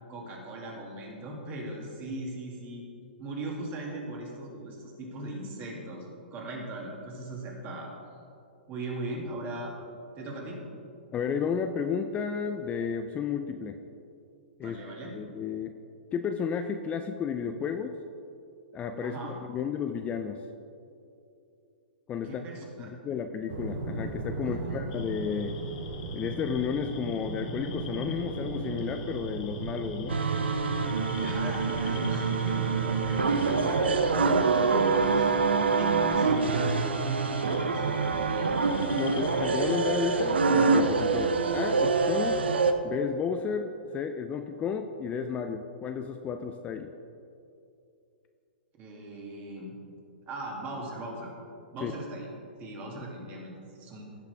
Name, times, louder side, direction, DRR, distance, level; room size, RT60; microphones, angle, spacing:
voice 1, 0.1-2.9 3.2-7.9 8.7-9.7 10.2-10.6 14.6-15.1 19.0-19.4 22.2-23.2 24.4-24.8 31.1-34.7 35.0-35.3 35.7-38.6 48.8-49.8 50.3-51.3 51.7-52.3 52.6-54.1, right 2 dB, 30° right, -1 dB, 2.3 m, -39 dB
voice 2, 11.1-13.8 14.6-14.8 15.1-15.7 16.1-18.0 18.7-19.2 19.5-20.4 22.1-22.4 22.8-25.6 26.1-30.2 31.2-31.5 38.9-42.4 42.8-46.9 51.8-51.9, left 6 dB, 25° left, 6 dB, 0.4 m, -32 dB
sound 1, 23.5-41.8, right 3 dB, 70° right, 1.2 m, -39 dB
sound 2, 24.9-40.2, left 8 dB, 50° left, 1.1 m, -48 dB
sound 3, 30.1-42.7, right 4 dB, 85° right, 0.6 m, -25 dB
16.0 x 5.9 x 3.4 m, 2.6 s
hypercardioid pair, 120°, 6 cm